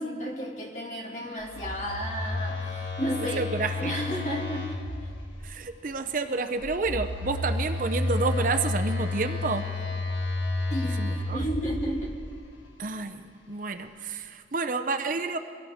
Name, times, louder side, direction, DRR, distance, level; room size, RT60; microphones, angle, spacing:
voice 1, 0.0-3.4 3.8-4.8 10.7-12.1, equal, 40° left, -1 dB, 2.2 m, -32 dB
Telephone, 1.4-5.4 6.6-12.3, left 2 dB, 90° left, 1.5 m, -31 dB
voice 2, 3.4-3.9 5.4-9.7 11.0-11.4 12.8-15.4, right 3 dB, 45° right, 7 dB, 0.6 m, -30 dB
23.5 x 17.0 x 3.6 m, 2.2 s
head